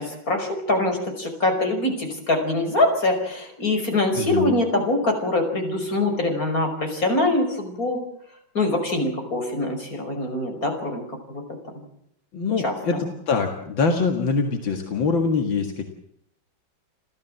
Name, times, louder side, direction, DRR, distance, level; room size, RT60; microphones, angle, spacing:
voice 1, 0.0-8.0 8.5-11.0 11.3-11.4 12.6-13.0, left 2 dB, 45° left, 4 dB, 5.9 m, -24 dB
voice 2, 4.1-4.5 12.3-15.9, left 4 dB, 80° left, 4 dB, 2.6 m, -24 dB
29.5 x 14.5 x 7.7 m, 0.74 s
omnidirectional pair, 2.1 m